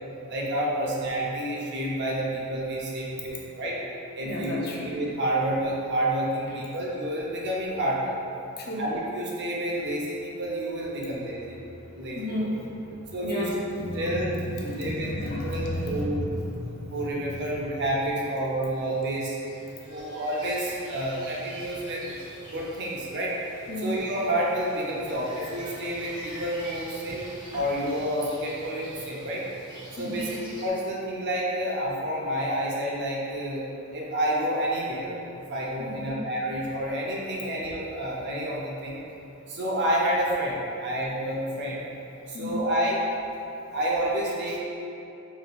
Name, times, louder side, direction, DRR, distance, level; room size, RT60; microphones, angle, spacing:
voice 1, 0.3-3.7 4.2-4.6 4.8-8.1 8.8-11.5 11.9-12.2 13.1-13.5 13.9-14.3 14.6-16.2 16.9-19.3 19.8-22.1 22.5-23.3 23.8-27.2 27.5-29.4 30.0-30.3 30.6-33.6 33.9-35.2 35.5-39.0 39.5-41.8 42.3-43.0 43.4-43.5 43.7-44.6, right 1 dB, 55° right, -4 dB, 0.5 m, -29 dB
voice 2, 4.2-4.9 8.6-8.8 12.1-17.4 23.7-23.9 30.0-30.4 35.8-36.1 42.3-42.7 44.4-44.6, left 1 dB, 45° left, -3 dB, 0.5 m, -33 dB
sound 1, 18.8-30.7, equal, 20° right, 0.8 m, -45 dB
3.5 x 2.7 x 2.3 m, 2.8 s
head